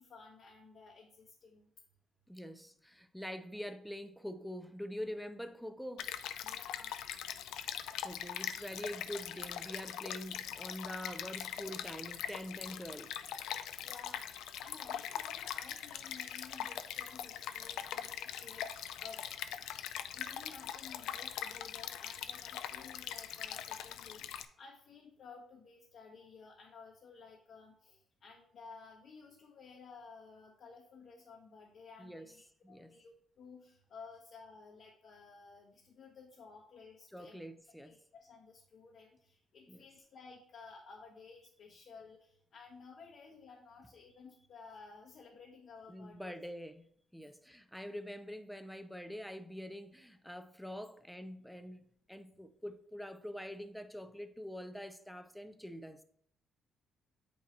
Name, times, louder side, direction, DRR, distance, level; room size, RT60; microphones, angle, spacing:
voice 1, 0.0-1.7 6.4-6.9 13.8-19.2 20.1-37.4 37.8-46.3, left 5 dB, 60° left, -1 dB, 1.1 m, -55 dB
voice 2, 2.3-6.1 8.0-13.1 32.0-32.3 32.6-32.9 37.1-38.0 39.7-39.8 45.9-56.0, equal, ahead, 9 dB, 0.6 m, -45 dB
Stream, 6.0-24.4, left 10 dB, 85° left, 0.4 m, -42 dB
8.6 x 2.9 x 4.3 m, 0.65 s
cardioid pair, 90°, 0 cm